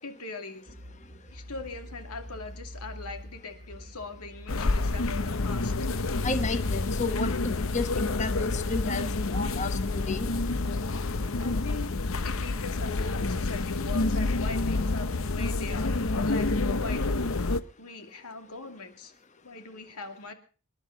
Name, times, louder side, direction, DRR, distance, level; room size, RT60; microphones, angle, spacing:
voice 1, 0.0-0.8 1.3-5.7 11.4-11.9 12.2-15.9 16.3-17.3 17.8-19.1 19.4-20.3, left 3 dB, 90° left, 6 dB, 2.5 m, -41 dB
sound 1, 0.7-6.5, equal, 75° right, 1.5 m, -45 dB
sound 2, 4.5-17.6, left 3 dB, 65° left, 0.8 m, -28 dB
voice 2, 6.2-10.3, left 3 dB, 30° left, 9 dB, 0.9 m, -32 dB
26.5 x 11.0 x 4.0 m, 0.38 s
head